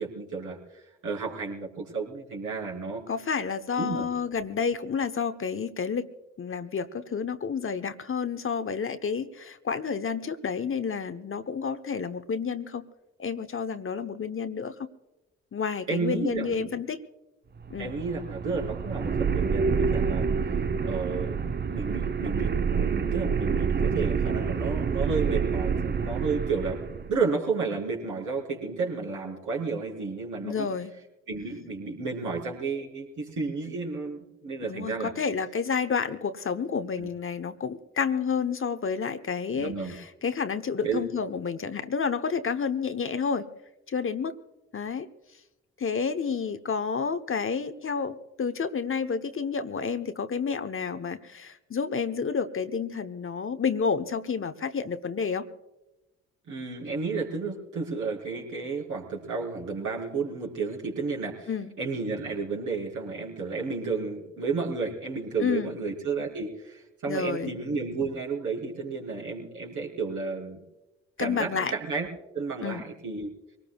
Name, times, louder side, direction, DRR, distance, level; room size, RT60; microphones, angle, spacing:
voice 1, 0.0-3.0 3.8-4.1 15.9-16.7 17.8-20.3 20.8-26.8 27.1-30.7 31.3-35.1 37.0-37.1 39.5-39.9 40.8-41.0 56.5-61.5 61.8-70.6 71.2-73.3, right 4 dB, 65° right, -2 dB, 4.2 m, -32 dB
voice 2, 3.1-6.1 6.4-12.9 13.2-14.9 15.5-17.0 17.7-17.9 30.4-30.9 34.6-43.5 43.9-44.4 44.7-45.1 45.8-55.5 61.5-61.7 65.4-65.7 67.1-67.5 71.2-71.7 72.6-72.8, left 6 dB, 40° left, 9 dB, 1.0 m, -30 dB
sound 1, 17.6-27.1, right 6 dB, 30° right, 0.8 m, -27 dB
24.5 x 19.0 x 2.3 m, 1.0 s
hypercardioid pair, 40°, 33 cm